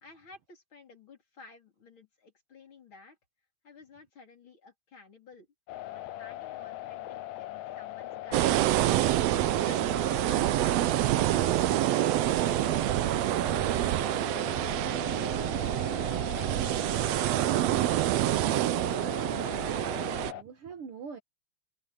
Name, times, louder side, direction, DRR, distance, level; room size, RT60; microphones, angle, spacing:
voice 1, 0.0-3.2 3.6-5.5 5.7-8.8 9.6-11.4 11.7-13.9 14.3-17.1, left 4 dB, 40° left, 4.2 m, -54 dB
sound 1, 5.7-20.4, left 14 dB, 80° left, 2.2 m, -40 dB
sound 2, 8.3-20.3, right 16 dB, 75° right, 1.7 m, -27 dB
voice 2, 18.5-19.6 20.0-21.2, right 6 dB, 55° right, 1.9 m, -44 dB
omnidirectional pair, 3.3 m